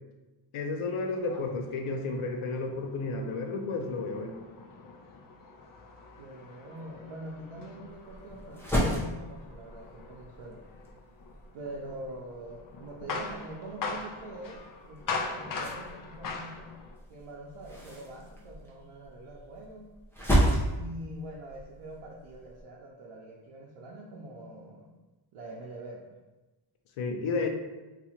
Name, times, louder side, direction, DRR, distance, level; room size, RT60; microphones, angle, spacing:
voice 1, 0.5-4.3 27.0-27.5, left 3 dB, 90° left, 3 dB, 0.6 m, -32 dB
sound 1, 1.2-17.0, left 4 dB, 45° left, 0.5 m, -42 dB
voice 2, 6.2-10.6 11.5-16.7 17.1-19.9 20.7-24.9 25.3-26.2, right 1 dB, 90° right, -3 dB, 0.6 m, -44 dB
sound 2, 7.9-22.6, equal, 5° left, 0.8 m, -34 dB
2.8 x 2.4 x 4.2 m, 1.1 s
wide cardioid pair, 120°, 49 cm